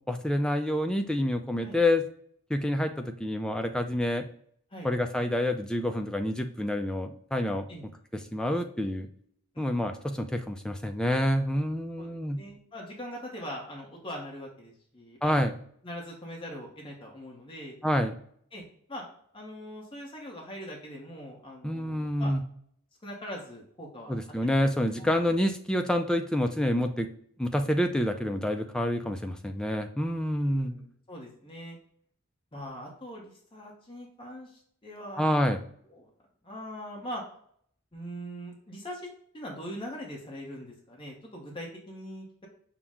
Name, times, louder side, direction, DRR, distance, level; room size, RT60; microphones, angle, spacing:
voice 1, 0.1-2.0 2.5-4.2 4.8-7.7 8.3-9.1 9.6-12.4 15.2-15.5 17.8-18.1 21.6-22.4 24.1-27.1 27.4-30.7 35.2-35.6, left 1 dB, 5° left, 6 dB, 0.3 m, -27 dB
voice 2, 12.0-15.3 15.8-17.8 18.5-18.6 18.9-19.0 19.3-22.3 23.0-24.2 24.4-25.3 30.4-31.8 32.5-35.5 35.9-36.1 36.4-37.2 37.9-39.1 39.3-42.5, equal, 25° left, -2 dB, 0.8 m, -42 dB
5.7 x 2.1 x 3.5 m, 0.63 s
head